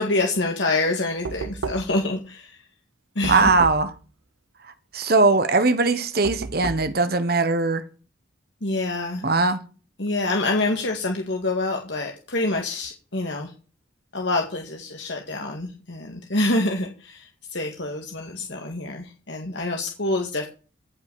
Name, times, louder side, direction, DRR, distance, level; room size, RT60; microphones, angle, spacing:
voice 1, 0.0-2.6 3.2-3.6 8.6-9.3 10.0-13.5 14.1-20.5, left 2 dB, 65° left, 2.0 m, -26 dB
Knock, 1.2-2.1 3.2-4.0 6.2-7.0, right 3 dB, 85° right, 0.7 m, -33 dB
voice 2, 3.3-3.9 4.9-7.8 9.2-9.6, right 3 dB, 50° right, 1.3 m, -20 dB
16.5 x 6.0 x 6.9 m
head